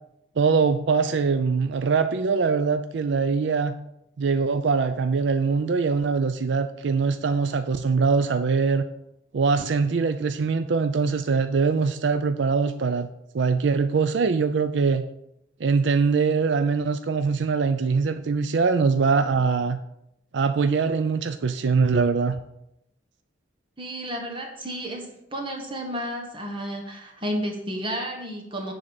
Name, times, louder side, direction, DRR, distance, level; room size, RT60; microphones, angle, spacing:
voice 1, 0.4-3.7 4.2-8.8 9.3-13.1 13.3-15.1 15.6-19.8 20.3-22.4, right 5 dB, 70° right, 9 dB, 0.4 m, -22 dB
voice 2, 23.8-28.7, equal, 25° right, 2 dB, 1.3 m, -32 dB
9.8 x 3.8 x 7.0 m, 0.81 s
head